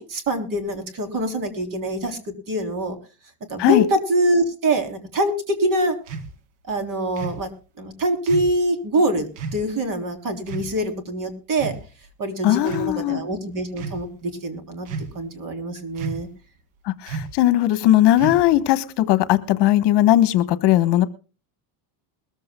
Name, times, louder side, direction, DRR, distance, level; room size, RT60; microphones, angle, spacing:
voice 1, 0.0-3.0 3.5-6.0 6.7-7.5 7.8-11.8 12.2-14.9 15.2-16.3, right 1 dB, 40° right, 7 dB, 3.5 m, -24 dB
sound 1, 6.1-6.3 7.2-7.4 8.3-8.6 9.4-9.6 10.5-10.7 11.5-12.1 12.6-12.9 13.7-14.0 14.9-15.3 16.0-16.4 17.1-17.4 18.2-18.6, right 4 dB, 90° right, 2.4 m, -32 dB
voice 2, 12.4-13.2 16.8-21.1, left 14 dB, 55° left, 13 dB, 1.3 m, -18 dB
21.5 x 14.5 x 2.2 m, 0.35 s
cardioid pair, 135°, 48 cm